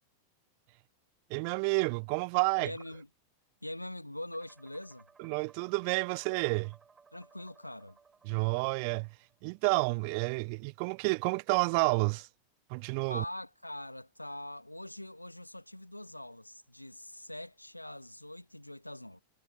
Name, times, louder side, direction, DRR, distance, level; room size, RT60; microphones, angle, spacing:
voice 1, 1.3-2.7 5.2-6.8 8.2-9.1 9.4-12.3 12.7-13.2, right 36 dB, 45° right, 0.6 m, -30 dB
voice 2, 2.6-3.1 3.6-5.0 7.1-8.0 13.1-19.2, left 1 dB, 85° left, 1.4 m, -43 dB
Synthetic Pluck (delay), 4.3-9.6, right 5 dB, 15° right, 7.9 m, -62 dB
figure-of-eight pair, 90°, 0 cm